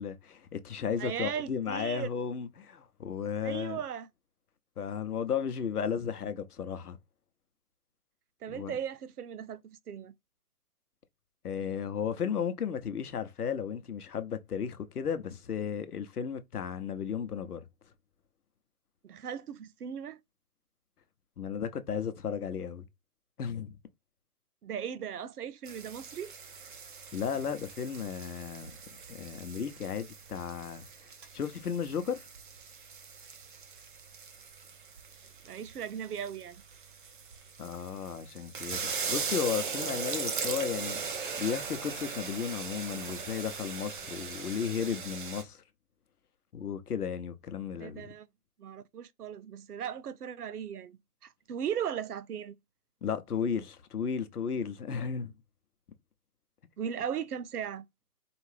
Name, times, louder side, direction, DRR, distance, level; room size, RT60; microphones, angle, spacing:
voice 1, 0.0-3.8 4.8-7.0 8.5-8.7 11.4-17.7 21.4-22.9 23.4-23.8 27.1-28.7 29.1-30.8 31.3-32.3 37.6-45.6 46.5-48.1 53.0-55.3, left 7 dB, 85° left, 0.9 m, -34 dB
voice 2, 1.0-2.1 3.4-4.1 8.4-10.1 19.0-20.2 24.6-26.3 35.4-36.6 47.8-48.3 48.6-52.5 56.8-57.9, right 8 dB, 85° right, 0.6 m, -37 dB
sound 1, 25.6-45.4, right 5 dB, 35° right, 0.6 m, -40 dB
4.8 x 2.5 x 3.3 m
hypercardioid pair, 150°, 45 cm